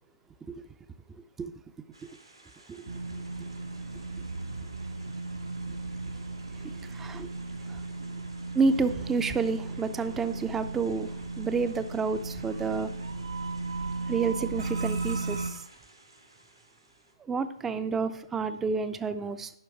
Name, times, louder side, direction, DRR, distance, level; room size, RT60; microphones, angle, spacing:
sound 1, 1.9-17.1, right 2 dB, 90° right, 2.5 m, -56 dB
sound 2, 2.8-15.5, right 3 dB, 70° right, 1.9 m, -36 dB
voice 1, 6.6-7.3 7.7-7.8 8.5-12.9 14.1-15.7 17.2-19.5, right 4 dB, 10° right, 12 dB, 0.4 m, -30 dB
11.0 x 5.1 x 4.5 m, 0.71 s
figure-of-eight pair, 135°, 3 cm